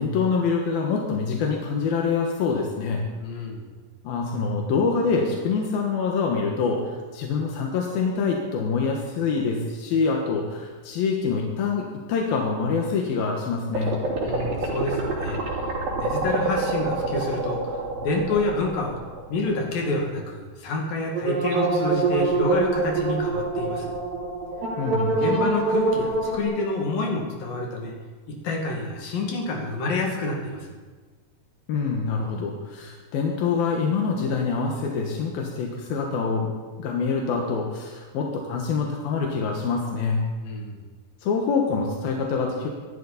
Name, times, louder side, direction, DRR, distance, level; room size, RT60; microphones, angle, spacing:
voice 1, 0.0-3.1 4.0-13.9 24.8-25.2 31.7-36.5 36.8-40.2 41.2-42.7, left 5 dB, 90° left, 0 dB, 3.3 m, -25 dB
voice 2, 3.2-3.6 14.2-15.4 16.0-19.0 19.3-23.9 25.2-27.9 28.3-30.7 40.4-40.8, left 2 dB, 70° left, 0 dB, 4.0 m, -28 dB
sound 1, 13.7-19.5 19.8-19.9 21.1-26.4, right 3 dB, 90° right, 5.1 m, -26 dB
25.0 x 12.0 x 4.2 m, 1.4 s
omnidirectional pair, 4.1 m